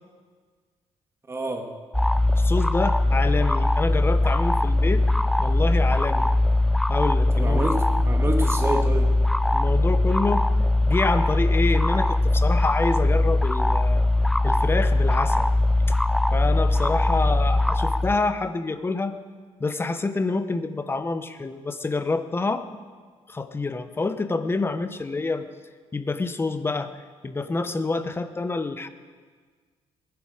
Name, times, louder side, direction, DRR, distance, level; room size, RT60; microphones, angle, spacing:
voice 1, 1.3-1.7 7.3-9.1, right 1 dB, 20° right, 4 dB, 1.7 m, -28 dB
sound 1, 1.9-18.2, left 2 dB, 5° left, 0.3 m, -21 dB
voice 2, 2.4-5.0 5.4-6.3 6.9-7.6 9.5-10.4 10.9-14.0 14.4-15.5 16.3-19.1 19.6-22.7 23.3-25.4 25.9-26.9 27.2-28.9, left 3 dB, 20° left, 10 dB, 0.8 m, -27 dB
20.5 x 10.5 x 4.9 m, 1.6 s
cardioid pair, 115°, 11 cm